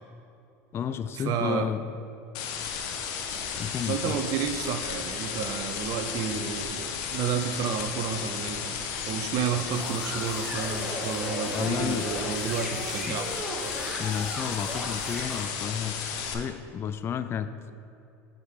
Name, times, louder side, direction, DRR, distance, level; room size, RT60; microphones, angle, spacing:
voice 1, 0.7-1.8 3.6-4.1 11.5-12.1 13.1-13.2 14.0-16.0 16.3-17.7, left 8 dB, 30° left, 10 dB, 0.3 m, -31 dB
voice 2, 1.2-1.7 3.9-8.8 9.1-13.3, right 7 dB, 55° right, 8 dB, 0.6 m, -31 dB
sound 1, 2.3-16.3, left 7 dB, 60° left, 0.9 m, -34 dB
sound 2, 9.7-15.4, equal, 5° right, 1.4 m, -36 dB
6.3 x 5.2 x 4.8 m, 2.7 s
hypercardioid pair, 85°, 8 cm